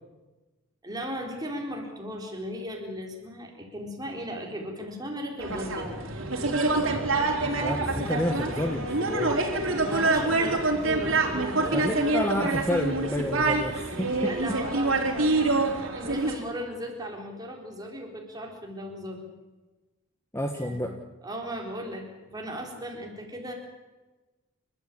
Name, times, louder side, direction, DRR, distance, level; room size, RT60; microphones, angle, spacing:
voice 1, 0.8-6.0 9.8-11.9 12.2-12.3 14.2-15.6 15.9-19.3 20.6-20.8 21.2-23.5, equal, 20° right, 1 dB, 4.3 m, -37 dB
sound 1, 5.4-16.4, right 2 dB, 70° right, 4.0 m, -26 dB
voice 2, 7.6-9.4 11.7-14.3 20.3-20.9, left 1 dB, 10° left, 4 dB, 1.3 m, -29 dB
30.0 x 13.0 x 8.7 m, 1.2 s
head